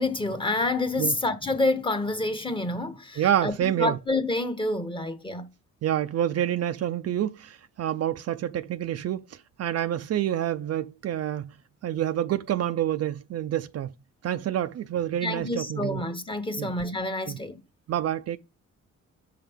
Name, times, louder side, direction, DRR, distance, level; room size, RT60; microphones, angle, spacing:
voice 1, 0.0-5.5 15.2-17.6, left 2 dB, 15° left, 1.0 m, -28 dB
voice 2, 3.2-4.0 5.8-11.5 11.8-13.9 14.2-16.0 16.6-16.7 17.3-17.4 17.9-18.4, right 11 dB, 55° right, 0.4 m, -28 dB
6.9 x 5.7 x 3.5 m
cardioid pair, 115°, 31 cm